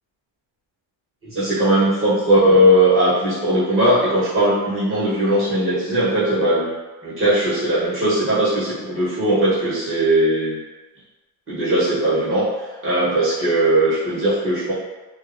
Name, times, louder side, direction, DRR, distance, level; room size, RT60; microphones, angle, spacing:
voice 1, 1.2-6.7 7.0-10.6 11.5-14.7, right 1 dB, 25° right, -10 dB, 1.0 m, -19 dB
2.5 x 2.2 x 2.4 m, 1.2 s
cardioid pair, 125°, 47 cm